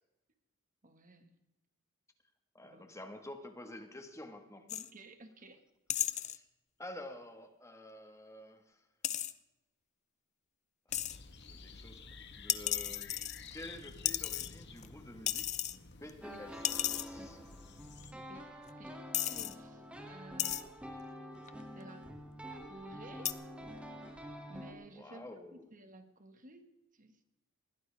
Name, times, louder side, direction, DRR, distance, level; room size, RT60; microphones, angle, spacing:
voice 1, 0.8-1.3 2.6-2.9 4.7-5.6 18.1-20.9 21.7-22.2 22.6-23.3 24.5-27.2, right 2 dB, 40° right, 7 dB, 1.6 m, -54 dB
voice 2, 2.5-4.7 6.0-6.5 6.8-8.9 10.9-11.2 11.5-13.2 13.5-17.4 24.9-25.7, left 1 dB, 15° left, 6 dB, 1.5 m, -50 dB
sound 1, 4.7-4.9 5.9-6.4 9.0-9.3 10.9-11.2 12.5-13.7 14.1-14.9 15.3-15.8 16.1-16.2 16.6-17.1 18.0-18.1 18.7-18.8 19.1-19.5 20.4-20.6 21.5-21.8 23.3-23.4, left 11 dB, 35° left, 0.6 m, -34 dB
sound 2, 10.9-18.1, left 4 dB, 55° left, 1.4 m, -52 dB
sound 3, 16.2-24.7, equal, 5° right, 2.3 m, -47 dB
21.0 x 15.5 x 3.4 m, 0.97 s
head